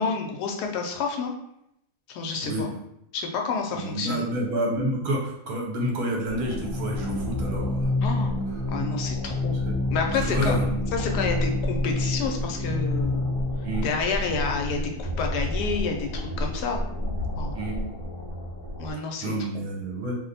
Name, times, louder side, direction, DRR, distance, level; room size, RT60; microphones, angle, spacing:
voice 1, 0.0-1.3 2.1-2.7 3.1-4.3 8.0-8.3 8.7-9.6 9.9-10.5 10.9-13.3 13.8-16.8 17.4-17.6 18.8-19.6, left 4 dB, 80° left, 2 dB, 1.2 m, -29 dB
voice 2, 3.7-7.9 8.5-8.6 9.7-9.8 10.2-10.7 13.6-13.9 17.5-17.8 19.2-20.1, right 1 dB, 70° right, -1 dB, 1.3 m, -29 dB
sound 1, 6.3-18.9, left 2 dB, 20° left, 1.0 m, -28 dB
2.9 x 2.1 x 3.9 m, 0.78 s
omnidirectional pair, 1.7 m